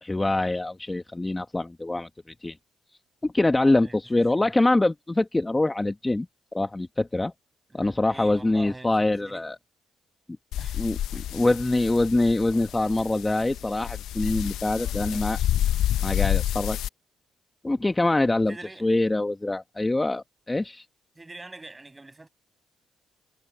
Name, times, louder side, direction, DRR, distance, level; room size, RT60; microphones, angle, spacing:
voice 1, 0.0-2.1 2.4-2.5 3.2-6.3 6.5-7.3 7.7-9.6 10.8-15.4 16.0-16.8 17.6-18.5 18.8-20.8, left 2 dB, 15° left, 1.5 m, -24 dB
voice 2, 3.8-4.5 7.7-9.5 10.6-11.6 12.5-14.0 14.6-15.7 18.5-18.9 21.2-22.3, right 2 dB, 20° right, 7.3 m, -46 dB
sound 1, 10.5-16.9, left 12 dB, 80° left, 0.6 m, -29 dB
cardioid pair, 90°, 0 cm